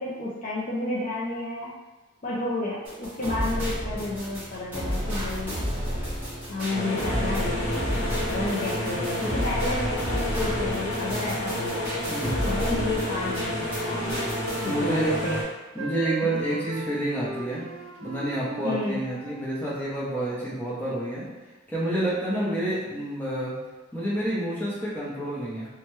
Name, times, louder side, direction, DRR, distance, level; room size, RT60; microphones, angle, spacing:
voice 1, 0.0-1.7 2.2-5.7 6.5-11.9 12.4-14.1 14.6-15.4 16.2-16.3 18.6-19.0 22.3-22.6, left 2 dB, 35° left, -7 dB, 0.4 m, -31 dB
sound 1, 2.8-13.8 14.1-14.7, equal, 10° right, 1.0 m, -31 dB
sound 2, 6.7-15.4, left 1 dB, 75° left, 0.8 m, -30 dB
Wind instrument woodwind instrument, 12.4-15.4 15.8-19.5, right 4 dB, 65° right, 0.4 m, -38 dB
voice 2, 14.6-15.1 15.7-17.7 18.0-21.2 21.7-23.5 23.9-25.7, right 1 dB, 10° left, -8 dB, 0.7 m, -29 dB
3.1 x 2.2 x 3.0 m, 1.2 s
head